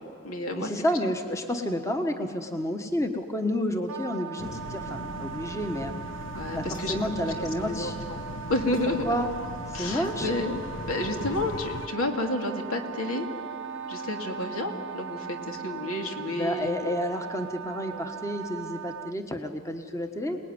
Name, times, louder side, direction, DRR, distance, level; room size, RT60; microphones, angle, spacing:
voice 1, 0.0-0.7 6.3-7.3 7.6-8.2 8.5-9.0 9.7-13.3 13.9-17.0 17.9-18.0, left 1 dB, 80° left, 4 dB, 2.6 m, -31 dB
voice 2, 0.5-5.9 6.5-7.9 9.0-9.3 9.7-10.3 16.3-20.4, left 1 dB, 15° left, 5 dB, 1.2 m, -30 dB
Wind instrument woodwind instrument, 3.9-19.2, right 10 dB, 80° right, 0.9 m, -40 dB
sound 1, 4.4-11.9, left 3 dB, 60° left, 0.7 m, -39 dB
Wind instrument woodwind instrument 2, 12.1-16.7, right 3 dB, 55° right, 0.8 m, -42 dB
28.0 x 19.5 x 9.7 m, 2.4 s
head